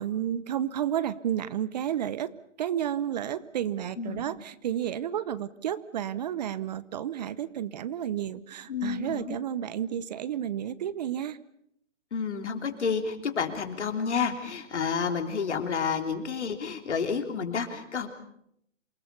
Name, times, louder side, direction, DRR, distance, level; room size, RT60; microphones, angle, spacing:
voice 1, 0.0-2.3 2.6-11.4, right 10 dB, 35° right, 17 dB, 0.9 m, -31 dB
voice 2, 8.7-9.4 12.1-18.1, left 6 dB, 70° left, 5 dB, 3.7 m, -30 dB
27.5 x 19.5 x 6.9 m, 0.72 s
hypercardioid pair, 145°, 36 cm